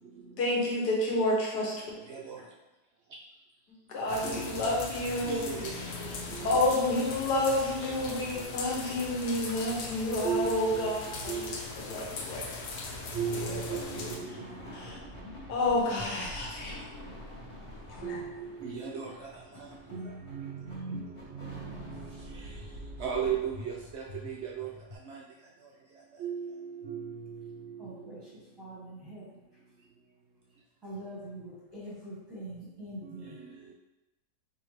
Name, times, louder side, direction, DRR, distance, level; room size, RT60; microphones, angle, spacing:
voice 1, 0.4-1.7 3.9-5.5 6.4-11.4 11.8-12.4 13.3-14.1 14.7-15.0 15.5-16.8 17.9-18.2, left 1 dB, 90° left, -3 dB, 1.6 m, -30 dB
voice 2, 2.1-2.4 4.2-4.9 5.2-7.1 7.8-7.9 8.4-8.5 10.2-10.9 11.3-11.6 12.3-12.4 13.1-14.8 18.0-24.7 25.0-25.2 26.2-28.1 33.0-33.7, right 6 dB, 80° right, -2 dB, 0.6 m, -37 dB
sound 1, 4.1-14.2, left 3 dB, 70° left, 1.2 m, -39 dB
sound 2, 12.3-25.0, left 1 dB, 25° left, 0.7 m, -47 dB
voice 3, 27.8-28.3 28.6-29.3 30.8-33.4, right 1 dB, 20° right, -8 dB, 0.9 m, -43 dB
4.7 x 3.4 x 3.1 m, 1.0 s
omnidirectional pair, 1.7 m